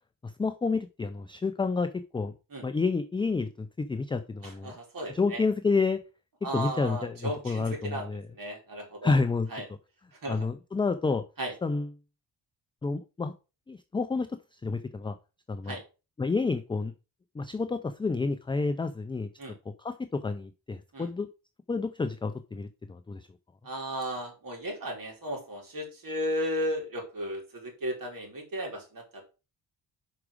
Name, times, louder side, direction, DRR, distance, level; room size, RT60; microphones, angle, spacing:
voice 1, 0.2-2.3 2.6-4.7 5.1-6.0 6.5-8.2 9.0-9.5 10.3-11.3 11.6-11.9 12.8-13.3 13.7-15.2 15.5-15.8 16.2-16.9 17.3-19.3 19.7-21.3 21.7-23.3, left 4 dB, 15° left, 10 dB, 0.3 m, -29 dB
voice 2, 4.4-5.4 6.4-9.1 9.5-9.6 10.1-10.5 11.4-11.5 15.6-15.8 19.4-19.6 20.9-21.1 23.6-29.3, equal, 45° right, 1 dB, 3.0 m, -35 dB
5.9 x 4.9 x 4.8 m, 0.31 s
cardioid pair, 105°, 44 cm